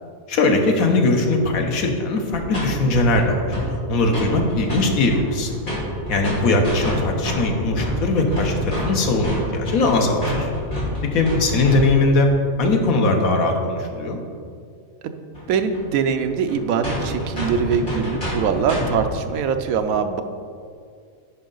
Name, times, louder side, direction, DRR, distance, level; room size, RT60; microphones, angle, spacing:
voice 1, 0.3-5.5 6.1-10.5 11.0-12.3 12.6-14.2, left 2 dB, 90° left, 3 dB, 1.4 m, -20 dB
sound 1, 2.3-2.7 2.9-3.7 3.9-4.8 5.1-12.0 15.3-15.4 15.7-15.8 16.1-16.2 16.5-16.6 16.8-19.0, equal, 35° left, 2.3 m, -27 dB
voice 2, 6.3-6.6 15.0-15.1 15.5-20.2, right 6 dB, 85° right, 8 dB, 1.1 m, -23 dB
10.0 x 5.4 x 3.9 m, 2.2 s
omnidirectional pair, 1.4 m